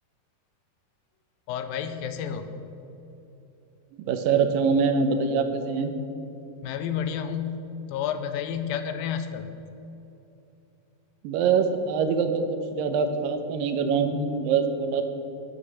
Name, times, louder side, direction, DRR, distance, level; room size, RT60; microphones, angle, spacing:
voice 1, 1.5-2.5 6.6-9.5, left 8 dB, 90° left, 9 dB, 2.4 m, -30 dB
voice 2, 3.9-5.9 11.2-15.0, right 5 dB, 80° right, 7 dB, 2.4 m, -24 dB
9.8 x 8.8 x 6.1 m, 2.9 s
omnidirectional pair, 4.1 m